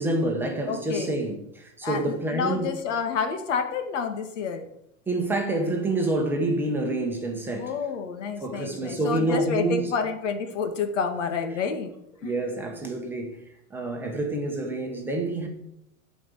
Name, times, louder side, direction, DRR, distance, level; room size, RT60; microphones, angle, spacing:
voice 1, 0.0-2.8 5.1-7.8 8.4-9.9 12.2-13.4 13.7-15.5, right 2 dB, 5° right, 1.0 m, -27 dB
voice 2, 0.7-1.2 1.8-4.7 7.6-11.9 12.2-12.4, left 5 dB, 90° left, 2.1 m, -29 dB
12.0 x 5.1 x 8.3 m
supercardioid pair, 180°, 36 cm